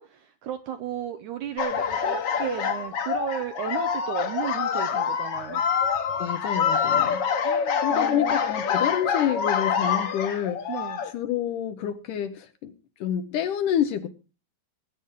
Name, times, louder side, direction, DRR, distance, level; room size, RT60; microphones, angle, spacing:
voice 1, 0.0-5.6 7.4-8.5 10.7-11.0, right 10 dB, 75° right, 8 dB, 1.8 m, -34 dB
sound 1, 1.6-11.1, left 7 dB, 55° left, 1.8 m, -26 dB
voice 2, 6.2-7.2 7.8-10.7 11.1-12.7 13.0-14.1, left 10 dB, 70° left, 9 dB, 2.1 m, -28 dB
20.5 x 9.8 x 3.7 m, 0.34 s
omnidirectional pair, 4.3 m